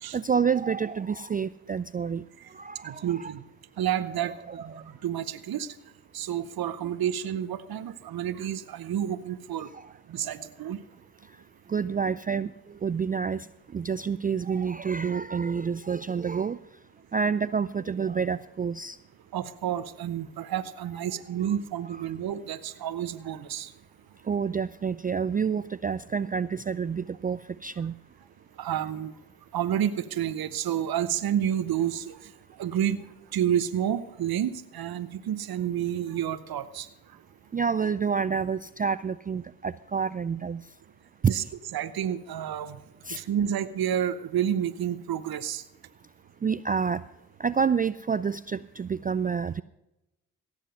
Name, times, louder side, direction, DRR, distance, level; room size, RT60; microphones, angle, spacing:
voice 1, 0.1-2.2 2.5-3.3 9.7-9.9 11.7-12.5 12.8-13.5 13.7-16.6 17.1-19.0 24.3-27.9 37.5-40.6 41.2-41.3 43.1-43.2 46.4-47.0 47.4-49.6, right 6 dB, 25° right, 16 dB, 0.3 m, -28 dB
voice 2, 2.8-3.4 3.8-4.3 4.6-5.7 6.1-9.7 10.1-10.8 19.3-23.7 28.6-29.1 29.5-32.3 32.6-33.0 33.3-36.9 41.3-41.4 41.7-42.8 43.1-45.6, right 10 dB, 65° right, 13 dB, 0.9 m, -30 dB
16.5 x 7.3 x 5.6 m, 0.93 s
supercardioid pair, 40°, 39 cm